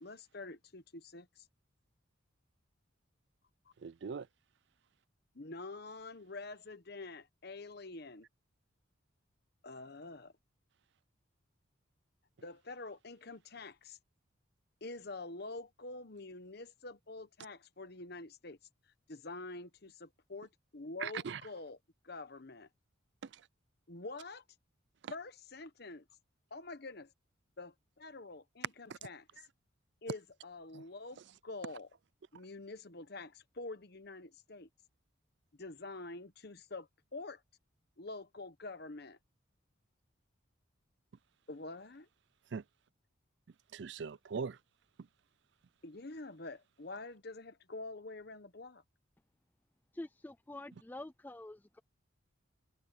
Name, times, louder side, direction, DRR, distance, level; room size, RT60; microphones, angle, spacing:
voice 1, 0.0-1.5 5.3-8.3 9.6-10.3 12.4-14.0 14.8-18.6 19.1-21.8 22.0-22.7 23.9-24.4 25.1-26.0 26.5-27.1 27.6-29.2 30.0-31.9 32.3-34.7 35.6-37.4 38.0-39.2 41.5-42.1 45.8-48.8, left 3 dB, 50° left, 1.1 m, -46 dB
voice 2, 3.8-4.3 21.0-21.4 23.2-23.4 25.0-25.1 28.9-29.0 30.7-30.8 42.5-42.6 43.7-44.6, right 6 dB, 55° right, 0.4 m, -40 dB
voice 3, 49.9-51.8, left 1 dB, 10° left, 0.3 m, -47 dB
head